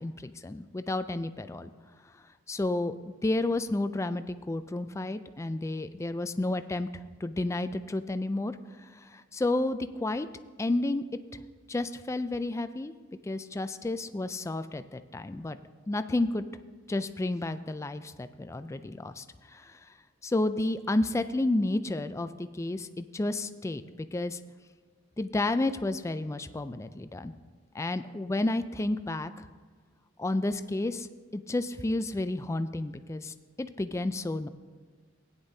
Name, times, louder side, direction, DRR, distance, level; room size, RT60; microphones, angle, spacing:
voice 1, 0.0-1.7 2.5-6.9 7.2-8.6 9.0-10.3 10.6-11.0 11.7-12.9 13.2-15.6 15.9-16.4 16.9-19.2 19.5-19.8 20.2-24.4 25.2-27.3 27.7-29.5 30.2-31.1 31.3-34.5, left 2 dB, 15° left, 11 dB, 0.3 m, -31 dB
16.0 x 9.6 x 2.7 m, 1.4 s
head